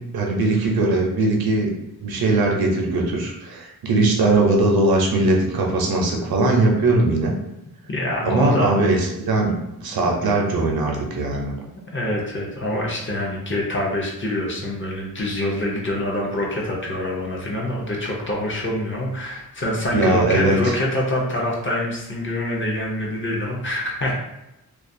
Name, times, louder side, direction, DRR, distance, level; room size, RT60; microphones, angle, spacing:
voice 1, 0.1-1.7 2.0-7.3 8.2-11.5 19.9-20.6, right 2 dB, 75° right, 0 dB, 0.6 m, -20 dB
voice 2, 7.9-8.7 10.0-10.2 11.7-24.3, left 1 dB, 35° left, -2 dB, 0.5 m, -25 dB
2.3 x 2.3 x 2.6 m, 0.92 s
wide cardioid pair, 140°, 37 cm